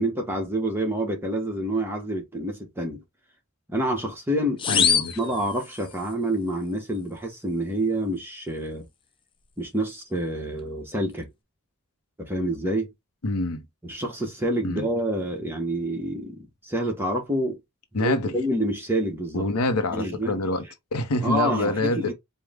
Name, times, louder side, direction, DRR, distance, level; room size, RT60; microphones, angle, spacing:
voice 1, 0.0-3.0 3.7-4.9 5.2-8.9 9.6-11.3 12.2-12.9 13.8-17.6 18.0-19.4 19.9-20.4 21.2-22.1, right 1 dB, 10° right, 1.0 m, -27 dB
sound 1, 4.6-6.1, left 7 dB, 20° left, 0.4 m, -25 dB
voice 2, 4.7-5.2 13.2-13.6 14.6-14.9 17.9-18.4 19.3-20.7 20.9-22.1, left 2 dB, 90° left, 0.8 m, -26 dB
4.6 x 2.2 x 3.5 m
head